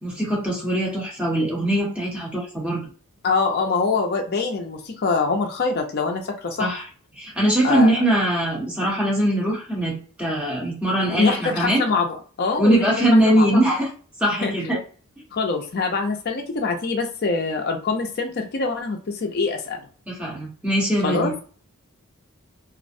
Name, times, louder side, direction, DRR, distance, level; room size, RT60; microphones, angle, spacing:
voice 1, 0.0-2.8 6.6-6.8 7.2-11.8 12.6-13.9 14.2-14.8 20.1-21.3, right 1 dB, 5° right, -4 dB, 0.9 m, -21 dB
voice 2, 3.2-6.8 7.6-7.9 11.0-13.0 13.3-13.5 14.4-14.5 15.3-19.9 21.0-21.4, left 4 dB, 45° left, 2 dB, 0.4 m, -24 dB
2.4 x 2.1 x 2.6 m, 0.39 s
head